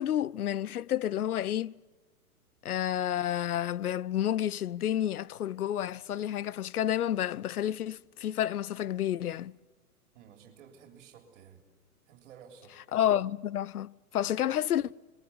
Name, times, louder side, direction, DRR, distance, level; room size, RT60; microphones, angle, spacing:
voice 1, 0.0-1.7 2.6-9.6 12.9-15.0, left 11 dB, 75° left, 0.7 m, -30 dB
voice 2, 10.1-11.6 12.1-12.8, right 7 dB, 50° right, 3.6 m, -53 dB
27.5 x 22.0 x 8.2 m
hypercardioid pair, 115°, 45 cm